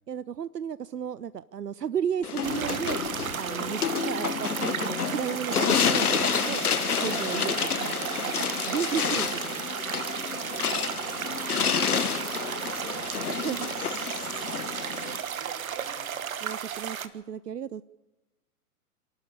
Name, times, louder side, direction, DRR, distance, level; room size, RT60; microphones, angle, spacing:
voice 1, 0.1-3.0 3.3-6.7 7.0-9.7 13.4-13.7 16.4-17.8, right 8 dB, 85° right, 17 dB, 0.6 m, -34 dB
sound 1, 2.2-15.2, left 7 dB, 70° left, 1.2 m, -29 dB
sound 2, 2.4-17.1, right 8 dB, 60° right, 1.4 m, -34 dB
voice 2, 10.5-11.3 12.5-16.4, right 6 dB, 35° right, 1 dB, 4.8 m, -48 dB
27.5 x 12.0 x 8.2 m, 1.0 s
figure-of-eight pair, 105°, 47 cm